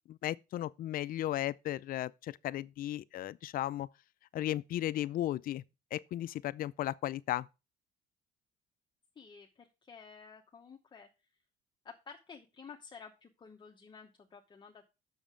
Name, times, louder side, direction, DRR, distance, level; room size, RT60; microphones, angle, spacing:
voice 1, 0.1-3.9 4.3-5.6 5.9-7.5, left 13 dB, 60° left, 0.4 m, -35 dB
voice 2, 9.2-11.1 11.8-14.9, left 6 dB, 30° left, 0.9 m, -52 dB
7.2 x 6.5 x 5.0 m
cardioid pair, 110°, 17 cm